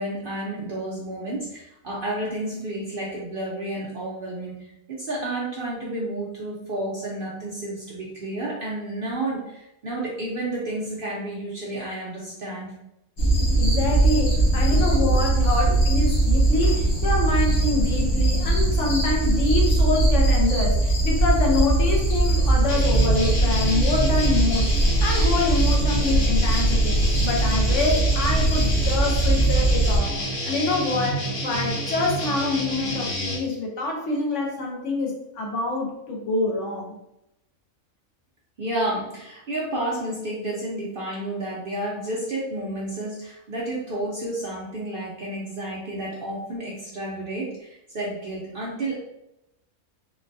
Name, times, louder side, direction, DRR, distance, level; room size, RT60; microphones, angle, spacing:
voice 1, 0.0-12.7 14.7-15.2 15.7-15.8 38.6-48.9, right 1 dB, 55° right, -5 dB, 0.6 m, -31 dB
sound 1, 13.2-30.0, right 2 dB, 90° left, 1.3 m, -20 dB
voice 2, 13.6-24.7 25.0-30.2 30.5-36.9, left 3 dB, 65° left, 0 dB, 0.9 m, -26 dB
sound 2, 22.7-33.4, right 1 dB, 40° left, 1.1 m, -29 dB
3.9 x 2.2 x 2.6 m, 0.85 s
omnidirectional pair, 1.5 m